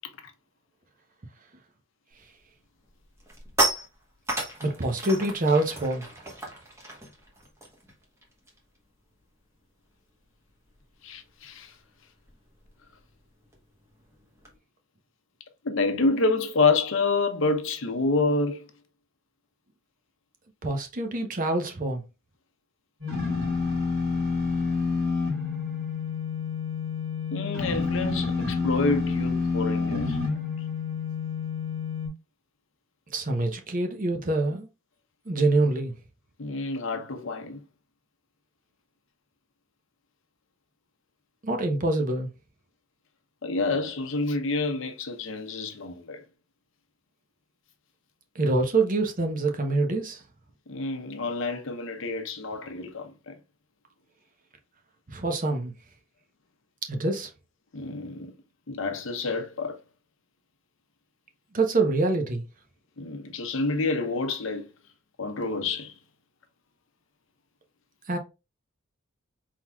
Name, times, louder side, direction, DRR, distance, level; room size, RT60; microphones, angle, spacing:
sound 1, 2.2-2.4 2.8-8.8 9.0-9.3 9.6-14.6, right 2 dB, 15° right, 1.1 m, -34 dB
voice 1, 4.6-6.1 20.6-22.0 33.1-34.7 35.3-35.9 41.4-42.3 48.3-50.2 55.1-55.7 56.9-57.3 61.5-62.4 68.1-68.2, right 2 dB, 40° right, 0.8 m, -25 dB
voice 2, 11.0-11.7 15.6-18.7 27.3-30.4 36.4-37.6 43.4-46.2 50.7-53.4 57.7-58.3 58.7-59.8 63.0-64.7 65.2-65.9, left 3 dB, 65° left, 0.7 m, -28 dB
sound 2, 23.0-32.1, left 4 dB, 90° right, 2.3 m, -28 dB
4.5 x 3.8 x 2.3 m
head